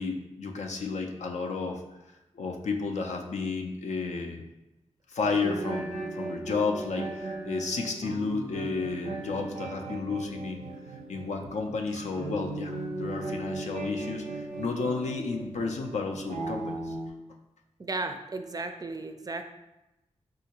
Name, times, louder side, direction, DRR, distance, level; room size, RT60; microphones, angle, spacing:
voice 1, 0.0-1.8 2.4-4.4 5.1-10.6 11.1-16.9, left 4 dB, 80° left, 3 dB, 0.4 m, -32 dB
sound 1, 5.2-17.1, right 2 dB, 85° right, 0.5 m, -37 dB
voice 2, 17.8-19.5, right 3 dB, 30° right, 7 dB, 0.3 m, -35 dB
3.6 x 2.4 x 2.9 m, 0.96 s
cardioid pair, 45°, 12 cm